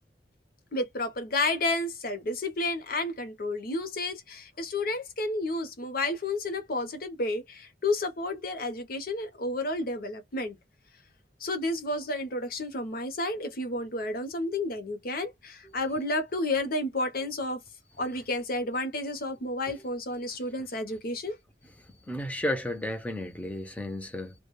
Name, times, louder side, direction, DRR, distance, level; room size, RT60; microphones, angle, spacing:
voice 1, 0.7-10.6 11.4-17.6 18.0-21.3, left 2 dB, 55° left, 0.7 m, -31 dB
voice 2, 22.1-24.3, left 1 dB, 10° left, 0.5 m, -33 dB
2.2 x 2.2 x 3.0 m
head